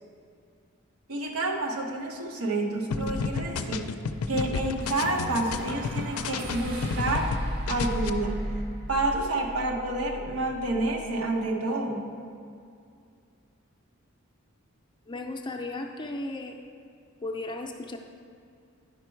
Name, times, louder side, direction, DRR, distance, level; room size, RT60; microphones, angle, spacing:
voice 1, 1.1-4.0 4.3-7.3 7.7-8.5 8.9-12.1, right 2 dB, 80° right, 1 dB, 1.0 m, -29 dB
sound 1, 2.9-7.4 7.7-8.1, left 4 dB, 80° left, 0.4 m, -31 dB
sound 2, 4.8-11.1, equal, 45° right, 1.0 m, -36 dB
voice 2, 15.1-16.6 17.2-18.0, left 2 dB, 20° left, 3 dB, 0.5 m, -35 dB
10.5 x 5.3 x 4.5 m, 2.3 s
head